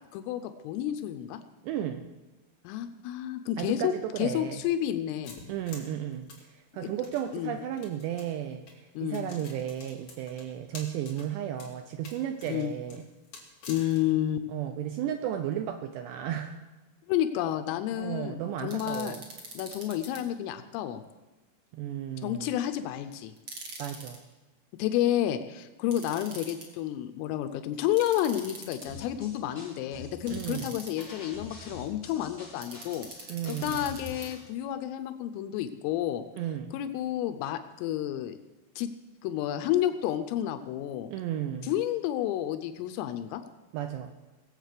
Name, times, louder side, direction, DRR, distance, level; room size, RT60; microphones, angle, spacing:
voice 1, 0.1-1.4 2.6-5.3 6.8-6.9 7.3-7.6 9.0-9.3 12.5-12.7 13.7-14.5 17.1-19.2 19.5-21.0 22.2-23.3 24.8-33.1 33.5-36.2 36.7-38.4 38.8-38.9 39.2-41.1 41.6-43.4, left 12 dB, 85° left, 8 dB, 3.3 m, -30 dB
voice 2, 1.6-2.1 3.6-4.6 5.5-13.0 14.5-16.6 18.0-19.2 21.7-22.5 23.8-24.2 30.3-30.7 33.3-33.8 36.4-36.7 41.1-41.7 43.7-44.1, right 10 dB, 85° right, 7 dB, 2.5 m, -34 dB
sound 1, 5.2-7.2 7.8-8.3 8.7-8.8 9.1-11.3 11.6-11.7 12.0-14.1, left 4 dB, 45° left, 3.3 m, -47 dB
sound 2, 18.7-20.2 23.4-24.2 25.9-26.7 28.0-29.1 30.3-31.0 32.6-34.3, right 2 dB, 50° right, 1.4 m, -44 dB
sound 3, 28.8-34.3, left 2 dB, 10° left, 5.2 m, -45 dB
20.0 x 8.1 x 6.6 m, 1.1 s
omnidirectional pair, 5.7 m